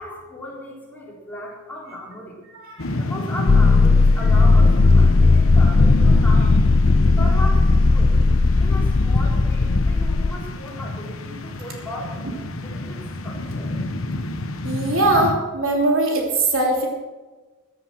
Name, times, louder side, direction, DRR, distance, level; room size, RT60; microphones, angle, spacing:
voice 1, 0.0-2.4 3.0-6.7 7.2-8.2 8.5-13.7, left 1 dB, 10° left, -5 dB, 3.9 m, -36 dB
voice 2, 2.5-3.0 12.2-12.4 14.6-16.9, right 2 dB, 70° right, 0 dB, 3.1 m, -21 dB
sound 1, 2.8-15.3, left 1 dB, 70° left, 1.2 m, -27 dB
sound 2, 3.5-10.3, left 3 dB, 35° left, 0.4 m, -16 dB
14.5 x 10.5 x 6.2 m, 1.3 s
head